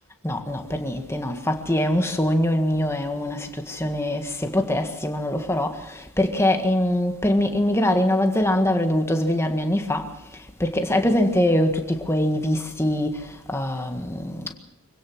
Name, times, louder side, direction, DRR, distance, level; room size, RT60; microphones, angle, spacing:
voice 1, 0.2-14.5, left 1 dB, 10° left, 1.8 m, -23 dB
25.0 x 17.0 x 6.2 m
head